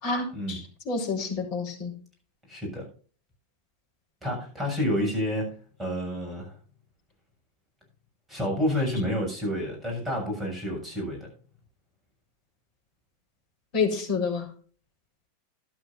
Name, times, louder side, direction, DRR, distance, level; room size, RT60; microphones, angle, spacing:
voice 1, 0.0-1.9 13.7-14.5, left 4 dB, 45° left, 0 dB, 4.8 m, -29 dB
voice 2, 2.5-2.9 4.2-6.6 8.3-11.3, equal, 15° right, 1 dB, 7.2 m, -29 dB
14.0 x 12.0 x 2.6 m, 0.41 s
figure-of-eight pair, 90°, 0 cm